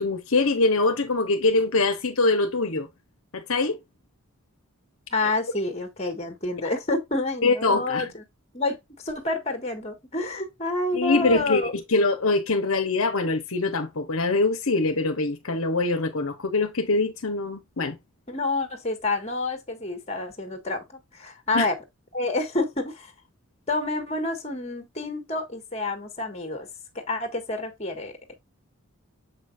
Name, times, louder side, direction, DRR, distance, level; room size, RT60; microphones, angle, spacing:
voice 1, 0.0-2.9 3.3-3.8 7.4-8.1 10.9-18.0 21.5-21.7, left 3 dB, 65° left, 1.0 m, -23 dB
voice 2, 5.1-8.2 8.5-8.8 9.0-11.7 18.3-21.7 22.1-23.1 23.7-26.7 26.9-28.3, left 2 dB, 30° left, 1.6 m, -28 dB
7.3 x 5.2 x 2.5 m
head